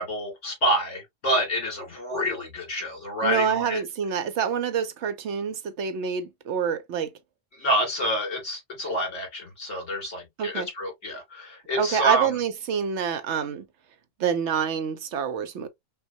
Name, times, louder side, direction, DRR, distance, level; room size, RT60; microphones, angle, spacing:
voice 1, 0.0-3.8 7.5-12.3, equal, 65° left, 2.7 m, -28 dB
voice 2, 3.2-7.1 10.4-10.7 11.8-13.6 14.2-15.7, right 7 dB, 70° right, 0.9 m, -27 dB
5.6 x 2.3 x 2.6 m
omnidirectional pair, 1.3 m